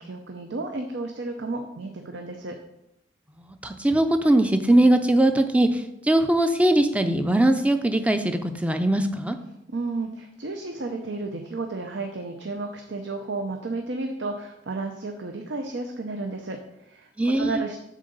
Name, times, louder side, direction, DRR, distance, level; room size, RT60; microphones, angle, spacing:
voice 1, 0.0-2.6 9.7-17.8, right 3 dB, 75° right, 4 dB, 0.6 m, -32 dB
voice 2, 3.5-9.4 17.2-17.6, right 1 dB, 5° right, 8 dB, 0.4 m, -21 dB
7.5 x 3.8 x 6.6 m, 0.86 s
head